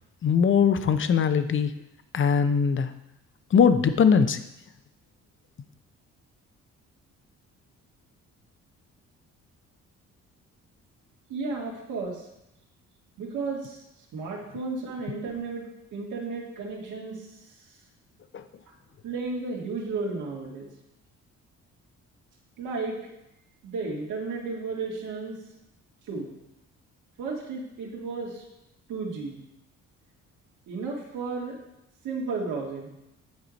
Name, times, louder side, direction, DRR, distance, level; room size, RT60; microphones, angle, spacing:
voice 1, 0.2-1.7 2.1-2.9 3.5-4.4, left 6 dB, 40° left, 11 dB, 0.7 m, -21 dB
voice 2, 11.3-12.3 13.2-13.8 14.1-17.3 19.0-20.7 22.6-23.0 23.6-25.4 26.1-26.4 27.2-28.4 28.9-29.4 30.7-31.6 32.0-32.9, right 4 dB, 80° right, -2 dB, 2.0 m, -33 dB
9.6 x 4.9 x 4.1 m, 0.87 s
cardioid pair, 90°, 30 cm